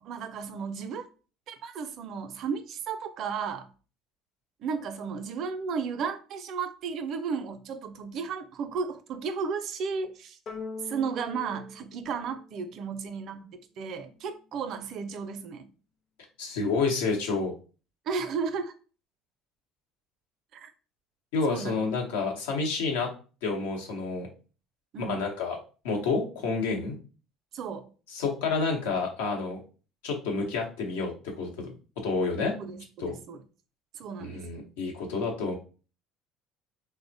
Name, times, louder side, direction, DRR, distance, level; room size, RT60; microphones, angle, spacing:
voice 1, 0.0-1.0 1.5-3.7 4.6-10.4 10.8-15.7 18.1-18.7 20.5-20.7 21.5-21.8 24.9-25.3 27.5-27.9 32.6-33.4 33.9-34.6, right 5 dB, 60° right, 0.4 m, -34 dB
sound 1, 10.5-13.0, left 4 dB, 50° left, 0.6 m, -42 dB
voice 2, 16.4-17.5 21.3-23.1 23.4-24.3 25.0-25.6 25.8-27.0 28.1-29.6 30.0-31.7 32.0-32.5 33.0-33.1 34.2-35.6, left 4 dB, 85° left, 0.9 m, -29 dB
3.3 x 2.1 x 2.6 m
supercardioid pair, 80°, 0 cm